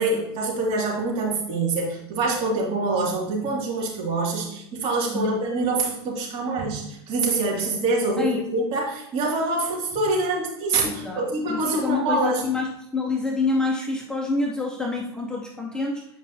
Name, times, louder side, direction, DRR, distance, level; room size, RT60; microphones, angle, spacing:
voice 1, 0.0-12.5, right 2 dB, 40° right, -3 dB, 2.5 m, -25 dB
voice 2, 5.1-5.4 8.2-8.5 10.9-16.1, left 3 dB, 5° left, 1 dB, 0.7 m, -27 dB
8.3 x 5.1 x 2.8 m, 0.85 s
supercardioid pair, 125°, 14 cm